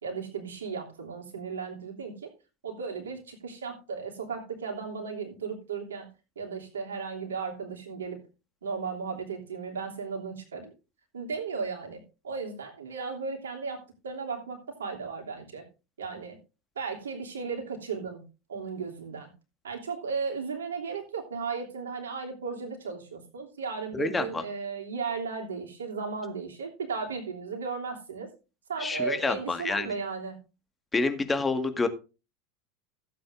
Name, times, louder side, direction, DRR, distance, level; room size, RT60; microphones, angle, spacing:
voice 1, 0.0-2.3 2.6-6.1 6.4-8.2 8.6-10.7 11.1-15.6 16.0-16.4 16.7-19.3 19.6-28.3 28.7-30.4, right 5 dB, 75° right, 1 dB, 3.0 m, -35 dB
voice 2, 23.9-24.4 28.8-29.9 30.9-31.9, left 3 dB, 15° left, 8 dB, 1.8 m, -28 dB
15.5 x 8.6 x 2.6 m, 0.30 s
figure-of-eight pair, 80°, 0 cm